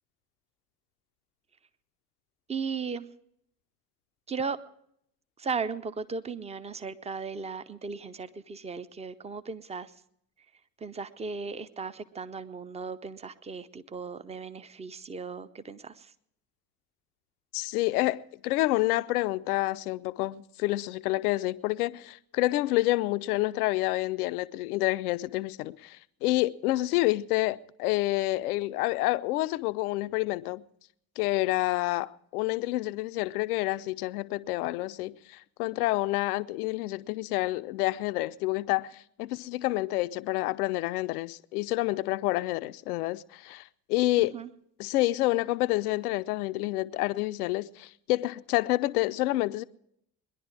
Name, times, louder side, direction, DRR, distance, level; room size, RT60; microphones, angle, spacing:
voice 1, 2.5-3.1 4.3-4.6 5.4-9.9 10.8-16.1 44.3-44.5, right 5 dB, 15° right, 0.6 m, -36 dB
voice 2, 17.5-30.6 31.2-44.4 44.8-49.6, left 18 dB, 65° left, 0.6 m, -28 dB
21.0 x 11.0 x 4.8 m
figure-of-eight pair, 55°, 50 cm